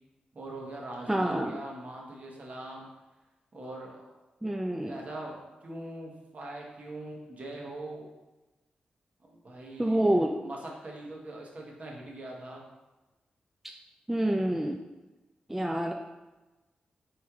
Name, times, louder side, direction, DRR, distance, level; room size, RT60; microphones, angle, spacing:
voice 1, 0.3-2.9 3.5-4.0 4.8-8.1 9.3-10.1 10.4-10.6 10.8-12.6, right 1 dB, 50° right, -2 dB, 1.1 m, -42 dB
voice 2, 1.1-1.5 4.4-4.9 9.8-10.4 14.1-14.8 15.5-15.9, right 1 dB, 10° right, 2 dB, 0.4 m, -27 dB
4.2 x 3.2 x 3.5 m, 1.1 s
cardioid pair, 55°, 3 cm